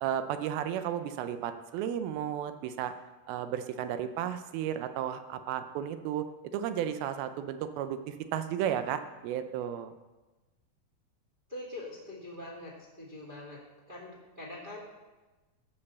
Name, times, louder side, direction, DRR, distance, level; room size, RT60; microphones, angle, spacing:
voice 1, 0.0-2.9 3.3-6.3 6.5-9.9, right 10 dB, 85° right, 9 dB, 2.5 m, -33 dB
voice 2, 11.5-13.6 13.9-14.8, left 1 dB, 20° right, -4 dB, 1.4 m, -43 dB
14.0 x 5.4 x 6.9 m, 1.2 s
omnidirectional pair, 4.3 m